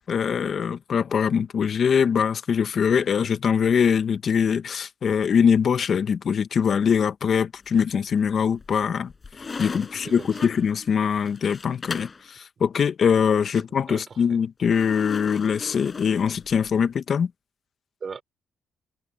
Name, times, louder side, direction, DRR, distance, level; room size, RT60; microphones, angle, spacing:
voice 1, 0.1-9.1 9.6-17.3, left 7 dB, 55° left, 1.6 m, -22 dB
sound 1, 7.6-8.2 8.6-12.3 14.7-16.8, left 4 dB, 35° left, 6.2 m, -38 dB
voice 2, 10.0-10.5 13.5-14.2 18.0-18.2, right 6 dB, 45° right, 3.6 m, -39 dB
cardioid pair, 90°, 0 cm